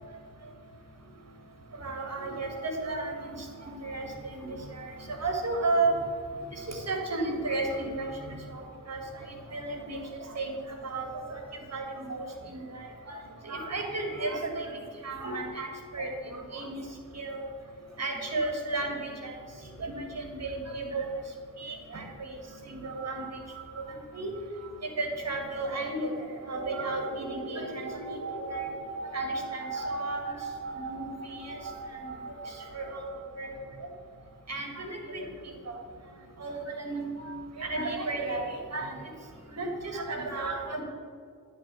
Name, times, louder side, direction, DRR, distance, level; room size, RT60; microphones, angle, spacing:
voice 1, 1.8-3.4 3.6-4.1 4.3-5.9 6.7-8.6 8.9-10.0 10.4-10.6 10.8-11.4 11.7-12.2 12.5-13.2 13.4-14.8 15.0-15.7 15.9-16.1 16.5-16.8 17.2-17.5 18.0-19.3 19.8-21.0 21.6-22.3 22.7-23.3 23.8-23.9 24.1-24.3 25.0-33.1 33.4-33.6 34.5-35.3 35.7-35.8 36.4-39.0 39.6-40.8, right 2 dB, 50° right, 2 dB, 1.8 m, -33 dB
9.0 x 3.7 x 6.2 m, 2.2 s
cardioid pair, 45°, 33 cm